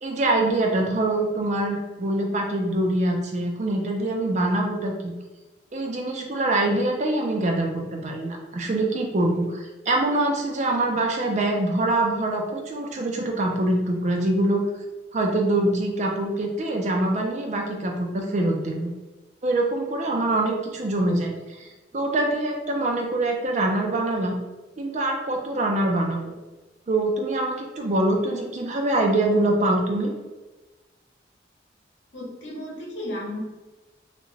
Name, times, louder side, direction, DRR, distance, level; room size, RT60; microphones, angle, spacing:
voice 1, 0.0-5.1 5.7-14.6 15.1-18.9 19.4-21.7 21.9-24.3 24.8-26.3 26.9-30.1, right 2 dB, 40° right, 1 dB, 0.4 m, -24 dB
voice 2, 32.1-33.4, left 1 dB, 75° left, -3 dB, 0.8 m, -34 dB
2.4 x 2.1 x 3.1 m, 1.1 s
head